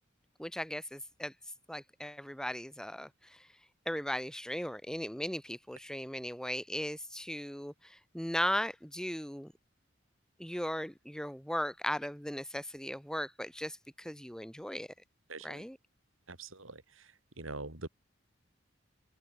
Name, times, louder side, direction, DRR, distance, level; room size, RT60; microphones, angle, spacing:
voice 1, 0.4-1.3 1.7-3.5 3.9-9.5 10.4-14.9 15.4-15.8, equal, 5° left, 7.0 m, -37 dB
voice 2, 15.3-15.6 16.3-16.8 17.4-17.9, right 2 dB, 85° right, 4.7 m, -43 dB
head